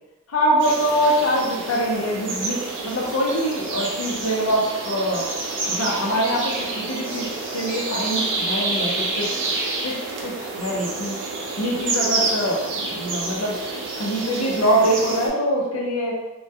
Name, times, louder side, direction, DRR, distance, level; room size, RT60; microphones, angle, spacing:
voice 1, 0.3-5.3 5.7-9.3 9.8-11.2 11.6-13.5 14.0-16.2, equal, 85° left, -2 dB, 0.6 m, -24 dB
sound 1, 0.6-15.3, right 3 dB, 60° right, 0.4 m, -28 dB
2.2 x 2.1 x 2.7 m, 1.0 s
head